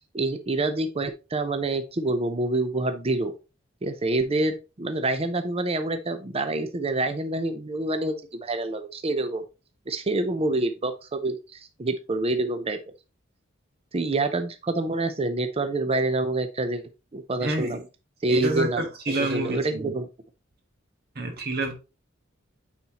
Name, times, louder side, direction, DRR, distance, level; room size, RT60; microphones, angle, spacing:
voice 1, 0.1-3.3 3.8-9.4 9.9-12.8 13.9-16.8 17.1-17.8 18.2-18.8 19.3-20.1, right 2 dB, 30° right, 8 dB, 0.6 m, -27 dB
voice 2, 17.4-17.8 18.3-19.9 21.1-21.7, right 1 dB, 55° right, 3 dB, 1.4 m, -28 dB
9.3 x 4.4 x 2.9 m, 0.29 s
head